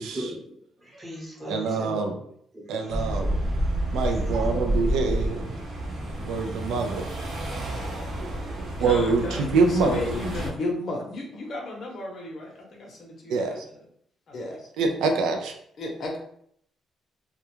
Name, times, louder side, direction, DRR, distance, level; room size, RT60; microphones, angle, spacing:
voice 1, 0.0-2.0 2.5-3.3 3.8-4.6, equal, 20° right, -4 dB, 0.9 m, -39 dB
voice 2, 1.5-2.1 2.7-3.4 3.9-5.5 6.2-7.1 8.2-8.3 8.6-9.9 13.3-13.7 14.8-15.5, right 4 dB, 85° right, 4 dB, 0.4 m, -25 dB
sound 1, 2.9-10.5, right 1 dB, 60° right, 0.7 m, -29 dB
voice 3, 8.8-13.9 14.3-14.7 15.0-15.1 15.8-16.2, left 2 dB, 55° left, 0 dB, 0.7 m, -34 dB
2.4 x 2.2 x 3.0 m, 0.67 s
cardioid pair, 90°, 0 cm